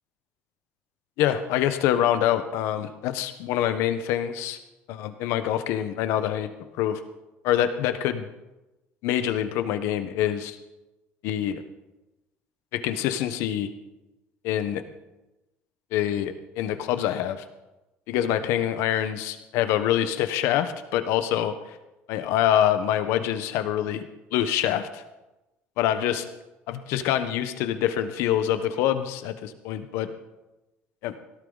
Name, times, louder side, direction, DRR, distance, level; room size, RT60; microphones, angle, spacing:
voice 1, 1.2-4.6 4.9-6.5 6.8-7.0 7.4-8.3 9.0-10.6 11.2-11.6 12.7-13.7 14.4-14.8 15.9-17.4 18.1-21.5 22.1-24.0 24.3-25.0 25.8-26.2 26.7-30.1 31.0-31.1, left 11 dB, 80° left, 10 dB, 1.1 m, -25 dB
17.5 x 13.0 x 4.0 m, 1.0 s
cardioid pair, 135°, 4 cm